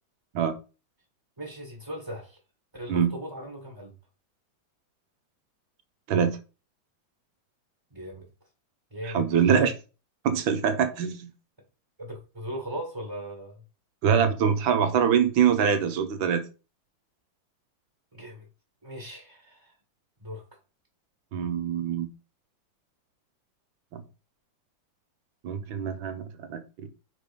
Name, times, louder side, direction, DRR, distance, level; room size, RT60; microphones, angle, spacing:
voice 1, 1.4-2.4 2.7-3.9 7.9-8.3 8.9-9.3 12.0-13.6 18.1-18.5 18.8-19.7 20.2-20.4, equal, 15° right, 1.4 m, -38 dB
voice 2, 6.1-6.4 9.0-9.8 10.2-11.3 14.0-16.5 21.3-22.1 23.9-24.0 25.4-26.9, right 7 dB, 80° right, 1.8 m, -24 dB
5.3 x 4.5 x 5.2 m
omnidirectional pair, 2.1 m